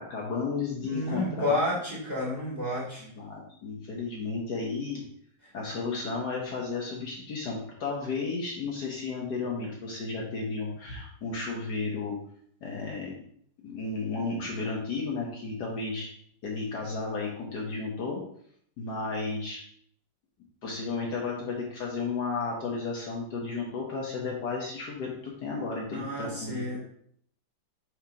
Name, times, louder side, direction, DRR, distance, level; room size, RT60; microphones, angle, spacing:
voice 1, 0.0-1.6 3.2-5.0 5.5-12.2 12.6-13.1 13.6-16.1 16.4-18.2 18.8-19.6 20.6-26.8, left 4 dB, 60° left, -2 dB, 1.5 m, -33 dB
voice 2, 0.8-3.1 5.4-5.5 25.9-26.8, left 1 dB, 20° right, -6 dB, 2.6 m, -30 dB
4.6 x 4.4 x 5.1 m, 0.65 s
omnidirectional pair, 2.2 m